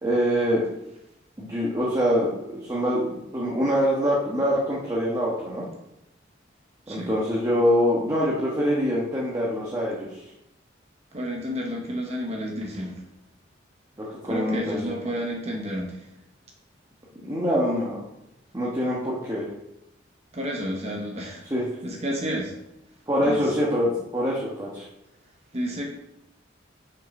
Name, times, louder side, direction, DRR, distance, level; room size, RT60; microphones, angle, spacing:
voice 1, 0.0-0.6 1.4-5.6 6.9-10.2 14.0-14.9 17.2-18.0 18.5-19.4 21.5-21.7 23.1-24.8, equal, 20° right, -6 dB, 1.3 m, -24 dB
voice 2, 11.1-13.0 14.3-16.1 20.3-21.4 21.8-22.5 23.2-23.5 25.5-25.8, equal, 35° right, 0 dB, 1.1 m, -31 dB
7.1 x 5.6 x 5.3 m, 0.87 s
head